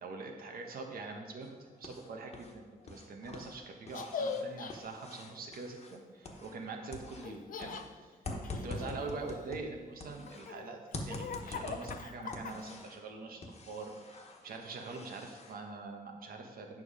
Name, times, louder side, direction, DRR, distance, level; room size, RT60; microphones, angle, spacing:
voice 1, 0.0-8.1 8.6-16.8, right 3 dB, 75° right, 3 dB, 1.4 m, -44 dB
sound 1, 1.4-2.5 2.8-6.7 6.9-10.5 10.9-13.0 13.4-15.5, left 2 dB, 45° left, 1.2 m, -45 dB
Laughter, 3.9-4.7 7.2-7.9 8.4-9.7 10.3-12.8, left 5 dB, 65° left, 0.6 m, -41 dB
9.3 x 6.2 x 5.0 m, 1.4 s
wide cardioid pair, 140°, 15 cm